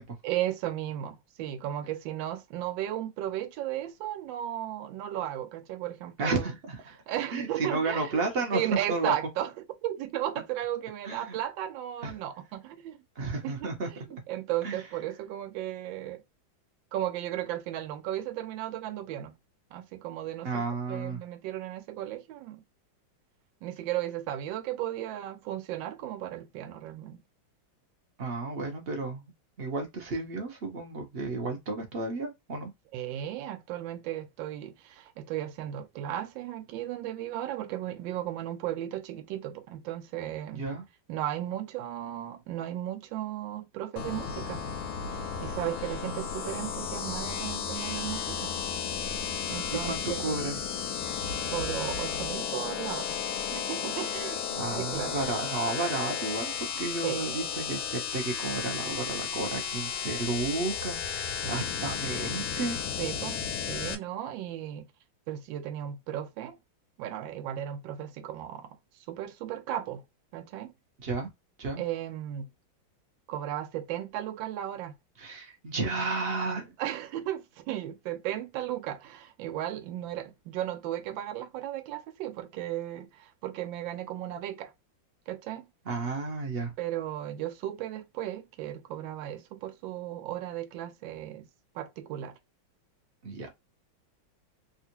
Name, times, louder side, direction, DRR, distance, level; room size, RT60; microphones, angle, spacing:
voice 1, 0.2-6.5 7.1-9.5 9.8-13.0 13.4-16.2 16.9-19.3 19.7-22.6 23.6-27.2 32.9-40.6 41.1-44.6 45.4-48.5 49.5-50.6 51.5-53.2 53.5-54.5 54.7-55.1 57.0-57.5 61.4-61.7 63.0-63.4 63.7-64.9 65.3-66.6 67.0-68.8 69.1-70.0 70.3-70.7 71.8-72.5 73.3-74.9 76.8-84.7 85.3-85.6 86.8-91.5 91.7-92.3, right 12 dB, 75° right, 1.3 m, -35 dB
voice 2, 6.2-7.0 7.3-9.1 11.0-11.4 12.0-12.1 13.2-13.9 14.6-14.8 20.4-21.2 28.2-29.3 29.6-32.7 40.5-40.8 46.0-46.2 49.8-50.6 54.5-62.8 71.0-71.3 71.6-71.8 75.2-76.7 85.9-86.7 93.2-93.5, right 3 dB, 50° right, 0.7 m, -32 dB
sound 1, 44.0-64.0, left 7 dB, 85° left, 1.4 m, -33 dB
3.4 x 2.4 x 2.9 m
omnidirectional pair, 2.1 m